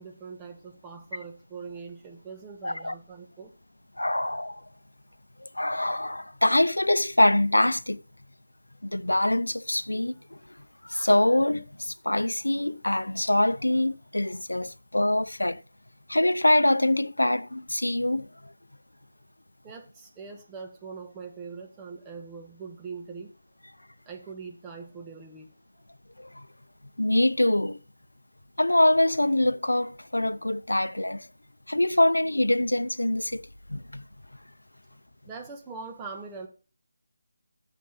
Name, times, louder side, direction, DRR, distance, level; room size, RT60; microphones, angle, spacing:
voice 1, 0.0-3.5 19.6-23.3 24.1-25.5 35.3-36.5, right 5 dB, 15° right, 1.3 m, -42 dB
voice 2, 2.6-2.9 4.0-4.6 5.4-8.0 8.8-10.4 10.8-15.6 16.1-18.3 26.2-26.5 27.0-27.8 28.6-31.3 31.7-34.0, left 1 dB, 90° left, 0.6 m, -24 dB
8.4 x 7.1 x 5.8 m
figure-of-eight pair, 160°, 0 cm